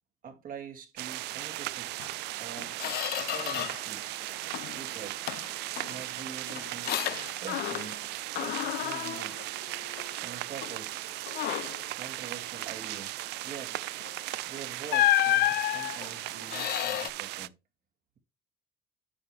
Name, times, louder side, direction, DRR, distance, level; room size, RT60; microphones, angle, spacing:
voice 1, 0.2-1.9 2.4-2.8 3.2-4.2 4.7-5.3 5.9-7.0 7.3-9.6 10.2-11.0 11.9-13.8 14.5-17.5, right 6 dB, 55° right, 2.4 m, -45 dB
sound 1, 1.0-17.5, right 18 dB, 85° right, 0.5 m, -37 dB
Squeak, 2.0-2.1 2.5-3.9 4.2-4.8 5.3-8.1 8.3-10.2 10.6-10.8 11.3-11.9 14.0-14.2 14.9-17.1, left 14 dB, 65° left, 0.5 m, -31 dB
8.9 x 6.7 x 3.3 m
cardioid pair, 110°, 17 cm